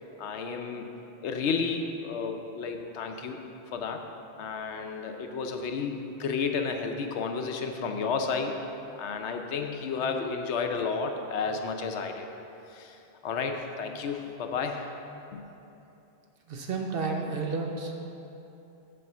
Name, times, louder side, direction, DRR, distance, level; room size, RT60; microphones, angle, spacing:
voice 1, 0.2-0.9 1.2-3.4 3.7-4.1 4.4-8.6 9.0-12.3 12.7-13.0 13.2-14.9 15.3-15.4, left 5 dB, 80° left, 5 dB, 0.9 m, -32 dB
voice 2, 16.5-18.1, right 4 dB, 60° right, 2 dB, 0.9 m, -31 dB
7.8 x 4.2 x 6.7 m, 2.9 s
omnidirectional pair, 1.2 m